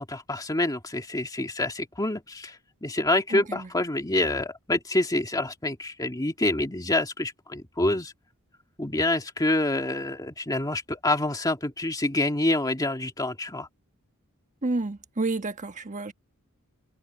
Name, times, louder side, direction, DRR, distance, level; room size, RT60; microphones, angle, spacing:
voice 1, 0.0-2.6 2.8-8.1 8.8-13.7, left 2 dB, 15° left, 2.0 m, -27 dB
voice 2, 3.3-3.7 14.6-16.1, right 2 dB, 35° right, 1.4 m, -30 dB
head